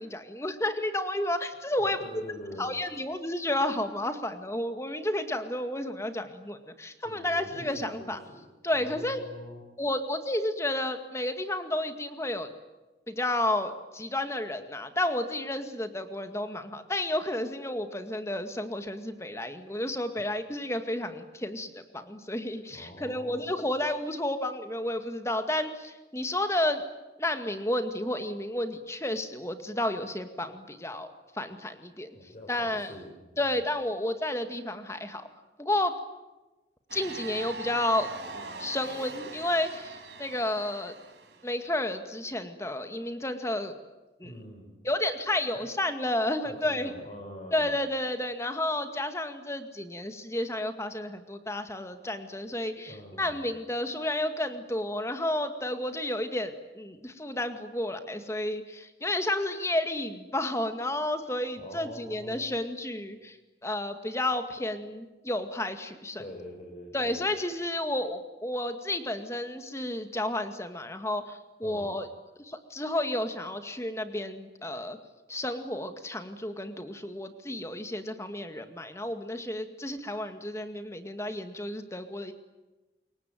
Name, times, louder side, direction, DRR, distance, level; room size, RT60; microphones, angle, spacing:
voice 1, 0.0-2.0 2.6-8.2 8.6-9.2 9.8-12.5 13.1-26.8 27.2-32.1 32.5-32.9 33.4-35.3 35.6-36.0 36.9-40.9 41.4-43.7 44.2-44.3 44.8-46.9 47.5-63.4 63.6-66.2 66.9-72.1 72.4-75.0 75.3-82.3, left 1 dB, 15° left, 8 dB, 2.1 m, -31 dB
voice 2, 1.8-2.8 7.0-8.4 8.7-9.6 22.7-23.5 32.1-33.6 44.2-44.7 45.5-45.6 46.4-47.8 52.8-53.5 61.6-62.6 66.2-67.4 71.6-71.9, equal, 35° left, 1 dB, 5.2 m, -44 dB
sound 1, 36.9-41.6, right 4 dB, 70° right, 3.5 m, -42 dB
27.0 x 23.0 x 9.3 m, 1.1 s
head